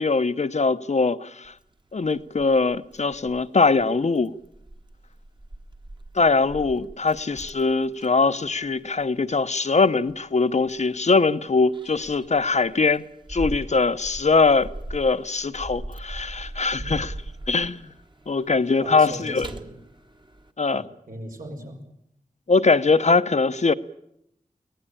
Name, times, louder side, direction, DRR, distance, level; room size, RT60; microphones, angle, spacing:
voice 1, 0.0-1.5 1.9-4.3 6.1-13.0 13.3-17.1 17.5-17.9 18.3-19.5 20.6-20.8 22.5-23.7, left 4 dB, 55° left, 0.8 m, -22 dB
Keys jangling, 1.4-20.5, right 1 dB, 35° right, 1.4 m, -41 dB
voice 2, 18.8-19.8 20.7-21.9, right 1 dB, 85° right, 5.3 m, -38 dB
24.0 x 17.5 x 9.0 m
wide cardioid pair, 85°, 14 cm